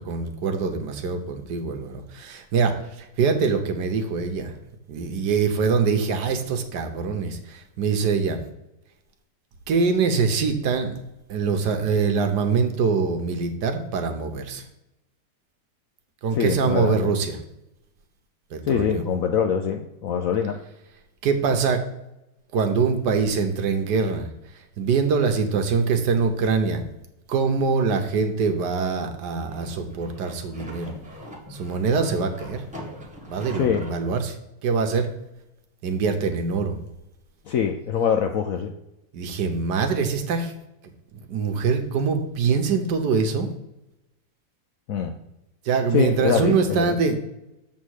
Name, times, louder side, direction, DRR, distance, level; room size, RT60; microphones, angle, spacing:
voice 1, 0.0-4.5 4.9-8.4 9.7-10.9 11.3-14.6 16.2-17.4 18.5-19.0 21.2-21.8 22.5-24.3 24.8-26.8 27.3-30.9 31.5-32.6 33.3-34.4 34.6-35.1 35.8-36.8 39.1-40.5 40.8-40.9 41.3-43.5 45.6-47.2, right 5 dB, 70° right, 6 dB, 1.4 m, -24 dB
voice 2, 16.4-17.1 18.7-20.6 33.5-33.8 37.5-38.7 44.9-45.1 45.9-46.9, left 7 dB, 70° left, 4 dB, 0.8 m, -24 dB
sound 1, 29.4-34.0, equal, 5° right, 1.3 m, -41 dB
7.4 x 3.7 x 6.3 m, 0.89 s
omnidirectional pair, 1.9 m